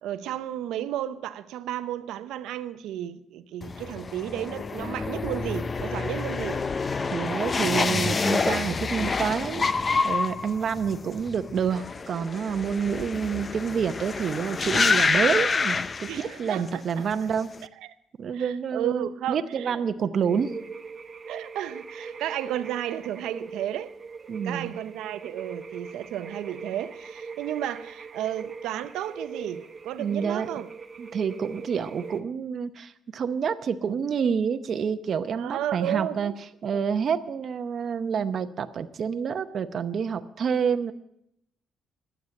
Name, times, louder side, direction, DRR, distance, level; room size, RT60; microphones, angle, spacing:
voice 1, 0.0-6.6 16.0-17.0 18.3-19.8 21.3-23.9 24.4-30.7 35.3-36.3, right 11 dB, 90° right, 0.7 m, -33 dB
sound 1, 3.6-16.7 17.0-17.6, left 4 dB, 35° left, 0.5 m, -27 dB
voice 2, 7.1-9.7 10.0-17.5 18.2-20.5 24.3-24.8 30.0-30.5 31.0-36.3 36.6-40.9, right 7 dB, 55° right, 0.7 m, -28 dB
sound 2, 20.3-32.2, right 5 dB, 35° right, 1.2 m, -40 dB
12.5 x 8.0 x 9.7 m
cardioid pair, 90°, 0 cm